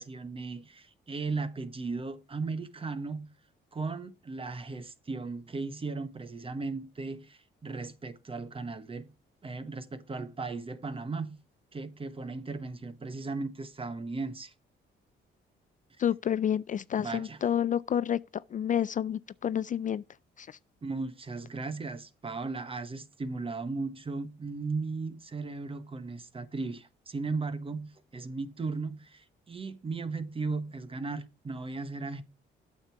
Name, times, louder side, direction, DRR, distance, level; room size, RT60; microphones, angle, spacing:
voice 1, 0.0-3.3 3.7-9.1 9.4-11.4 11.7-14.5 17.0-17.4 20.8-32.2, right 3 dB, 25° right, 1.1 m, -36 dB
voice 2, 16.0-18.2 18.5-20.0 20.4-20.6, left 9 dB, 40° left, 0.4 m, -29 dB
8.8 x 6.7 x 4.6 m
cardioid pair, 90°, 20 cm